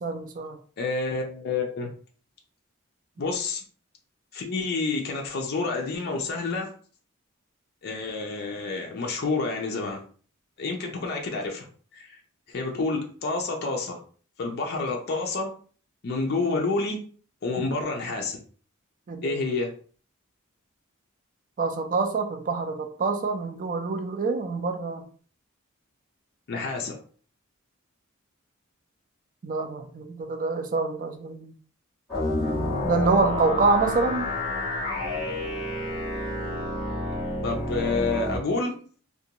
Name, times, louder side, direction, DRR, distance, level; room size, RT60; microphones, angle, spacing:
voice 1, 0.0-0.6 19.1-19.4 21.6-25.1 29.4-31.6 32.8-34.3, right 4 dB, 40° right, 6 dB, 0.4 m, -26 dB
voice 2, 0.8-1.9 3.2-3.6 4.3-6.7 7.8-10.0 10.6-11.7 11.9-12.2 12.5-14.0 14.4-15.5 16.0-17.0 17.4-18.4 19.2-19.7 26.5-27.0 37.4-38.7, left 3 dB, 50° left, 1 dB, 0.5 m, -29 dB
sound 1, 32.1-38.4, left 2 dB, ahead, 1.3 m, -29 dB
2.5 x 2.1 x 2.8 m, 0.44 s
head